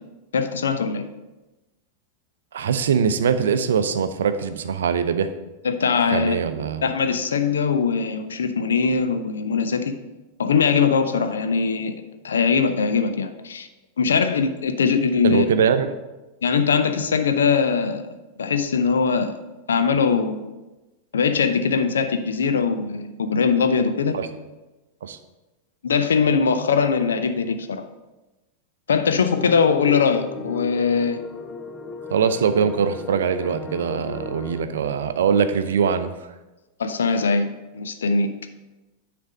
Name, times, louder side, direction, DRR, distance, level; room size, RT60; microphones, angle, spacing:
voice 1, 0.3-1.0 5.6-6.4 6.8-9.9 10.4-11.9 12.2-13.7 14.0-15.5 16.4-18.1 18.4-19.3 19.7-20.4 21.1-24.2 25.8-27.8 28.9-31.2 36.8-37.5 37.7-38.3, left 5 dB, 65° left, 8 dB, 0.6 m, -21 dB
voice 2, 2.5-5.3 6.1-6.8 15.2-15.9 24.1-24.3 25.0-25.2 32.1-36.1, right 7 dB, 65° right, 10 dB, 0.5 m, -22 dB
sound 1, 29.3-34.7, left 4 dB, 20° left, 0.5 m, -36 dB
9.5 x 3.4 x 5.2 m, 1.1 s
figure-of-eight pair, 90°, 0 cm